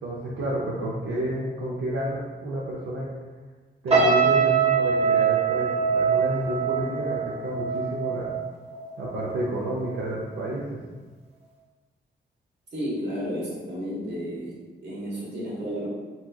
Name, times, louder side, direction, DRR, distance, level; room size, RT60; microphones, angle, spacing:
voice 1, 0.0-3.1 3.8-8.3 9.0-10.8, right 1 dB, 80° right, -6 dB, 0.6 m, -30 dB
sound 1, 3.9-9.2 9.5-9.8, right 6 dB, 35° right, 0.7 m, -23 dB
voice 2, 12.7-14.5 14.8-15.9, equal, 65° right, -6 dB, 1.2 m, -32 dB
3.5 x 3.0 x 2.3 m, 1.4 s
cardioid pair, 100°, 19 cm